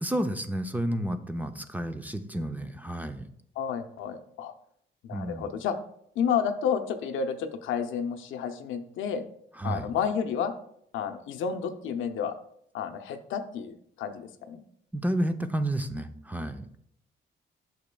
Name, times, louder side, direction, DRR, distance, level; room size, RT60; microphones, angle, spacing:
voice 1, 0.0-3.3 5.1-5.5 9.6-9.9 14.9-16.7, right 1 dB, 10° right, 8 dB, 0.5 m, -31 dB
voice 2, 3.6-4.5 5.0-5.7 6.2-9.2 9.6-10.5 10.9-12.3 12.7-14.6, left 7 dB, 80° left, 6 dB, 0.6 m, -31 dB
8.3 x 5.9 x 2.2 m, 0.69 s
cardioid pair, 90°, 20 cm